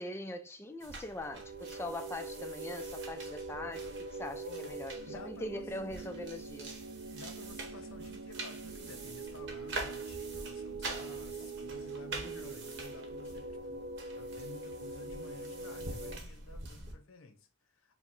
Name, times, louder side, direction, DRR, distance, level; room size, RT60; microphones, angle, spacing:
voice 1, 0.0-6.8 12.2-12.5, left 1 dB, 10° left, 0.3 m, -42 dB
sound 1, 0.8-16.9, right 2 dB, 60° right, 1.0 m, -46 dB
sound 2, 1.2-16.2, right 3 dB, 75° right, 0.4 m, -43 dB
voice 2, 4.4-5.7 7.1-13.8 14.2-18.0, left 3 dB, 90° left, 0.7 m, -53 dB
4.5 x 2.1 x 3.9 m
head